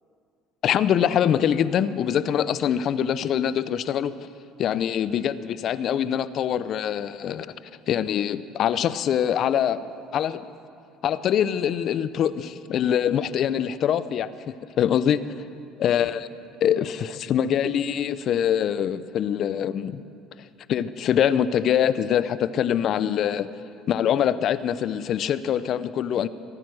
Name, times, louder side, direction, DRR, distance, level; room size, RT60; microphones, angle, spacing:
voice 1, 0.6-4.3 4.6-7.5 7.9-9.8 10.1-10.5 11.0-14.3 14.8-15.2 15.8-16.3 16.6-20.0 20.7-23.5 23.9-26.3, left 9 dB, 55° left, 15 dB, 0.6 m, -24 dB
23.0 x 9.2 x 6.3 m, 2.4 s
supercardioid pair, 80°, 0 cm